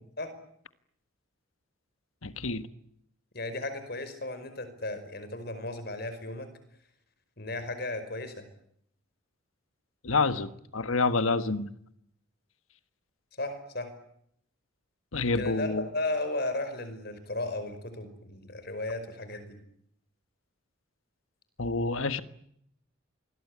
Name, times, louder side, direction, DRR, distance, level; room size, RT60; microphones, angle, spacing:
voice 1, 2.2-2.7 10.0-11.7 15.1-15.9 21.6-22.2, left 3 dB, 90° left, 1.5 m, -28 dB
voice 2, 3.3-6.5 7.4-8.5 13.4-13.9 15.3-19.6, left 2 dB, 50° left, 5.2 m, -35 dB
26.5 x 21.0 x 9.8 m
head